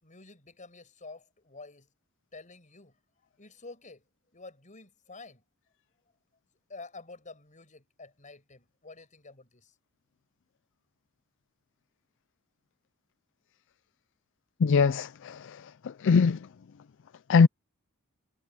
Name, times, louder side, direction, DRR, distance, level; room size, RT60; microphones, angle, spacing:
voice 1, 0.0-1.9 2.3-2.9 3.4-4.0 4.3-5.4 6.7-9.7, left 3 dB, 35° left, 5.9 m, -49 dB
voice 2, 14.6-16.4 17.3-17.5, left 5 dB, 55° left, 0.4 m, -22 dB
head